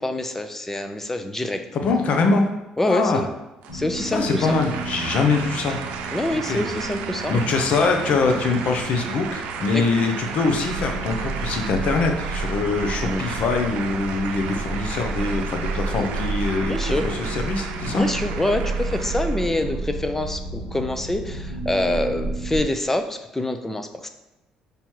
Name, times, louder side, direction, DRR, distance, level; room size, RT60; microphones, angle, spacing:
voice 1, 0.0-1.6 2.8-3.3 3.7-4.5 6.1-7.3 9.7-9.9 13.0-13.2 15.9-16.1 16.6-17.0 17.9-24.1, left 1 dB, 15° left, 7 dB, 0.7 m, -26 dB
voice 2, 1.7-2.5 2.9-3.2 4.1-5.8 6.4-6.6 7.3-18.0, left 4 dB, 65° left, 4 dB, 0.9 m, -23 dB
sound 1, 3.6-19.7, right 6 dB, 85° right, 0.6 m, -34 dB
sound 2, 3.7-22.6, right 2 dB, 85° left, 2.2 m, -31 dB
5.2 x 4.5 x 4.6 m, 0.98 s
supercardioid pair, 80°, 2 cm